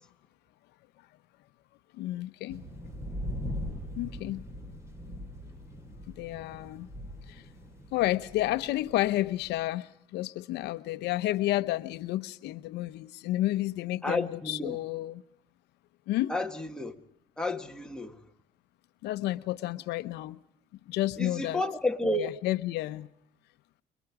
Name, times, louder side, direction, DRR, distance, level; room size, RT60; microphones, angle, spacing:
voice 1, 2.0-2.6 3.9-4.5 6.1-6.9 7.3-7.4 7.9-15.2 16.1-16.3 19.0-20.4 20.9-21.6 22.1-23.1, left 16 dB, 85° left, 0.8 m, -31 dB
sound 1, 2.5-9.6, equal, 15° right, 7.2 m, -41 dB
voice 2, 14.0-14.8 16.3-17.0 17.4-18.1 21.2-22.3, left 1 dB, 5° left, 1.9 m, -31 dB
30.0 x 22.5 x 4.9 m
cardioid pair, 110°, 17 cm